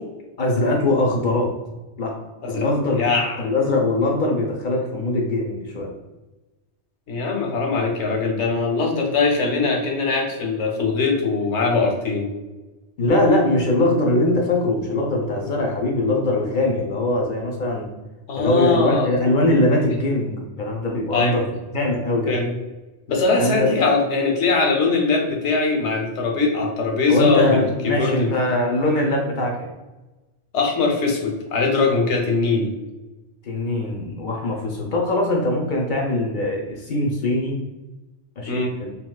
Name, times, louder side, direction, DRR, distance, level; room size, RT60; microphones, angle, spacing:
voice 1, 0.4-1.6 2.0-2.2 2.5-3.0 3.4-5.9 13.0-17.9 18.3-21.5 21.7-22.3 23.4-23.7 27.1-29.7 33.5-37.6 38.4-38.9, left 2 dB, 55° left, 0 dB, 0.6 m, -21 dB
voice 2, 3.0-3.3 7.1-12.3 18.3-19.1 21.1-21.4 22.3-22.5 23.1-28.3 30.5-32.7 38.5-38.7, left 4 dB, 90° left, 1 dB, 1.0 m, -21 dB
3.6 x 2.7 x 2.2 m, 1.1 s
omnidirectional pair, 1.2 m